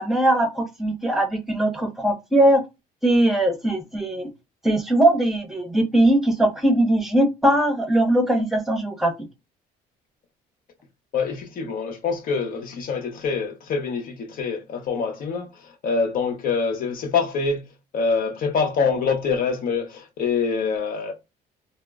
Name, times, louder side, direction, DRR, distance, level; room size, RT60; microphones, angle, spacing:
voice 1, 0.0-2.6 3.0-4.3 4.6-9.1, right 1 dB, ahead, 0.7 m, -20 dB
voice 2, 11.1-17.6 17.9-21.1, left 5 dB, 55° left, 0.7 m, -25 dB
2.1 x 2.0 x 3.4 m
cardioid pair, 110°, 17 cm